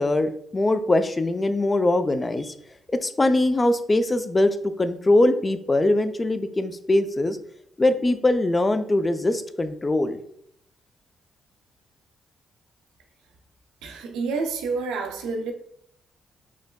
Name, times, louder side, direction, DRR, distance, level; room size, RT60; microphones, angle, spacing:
voice 1, 0.0-2.5 2.9-7.4 7.8-10.2, left 2 dB, 30° left, 0.4 m, -22 dB
voice 2, 13.8-15.5, right 4 dB, 90° right, 0.6 m, -28 dB
6.1 x 2.2 x 2.2 m
supercardioid pair, 60°, 0 cm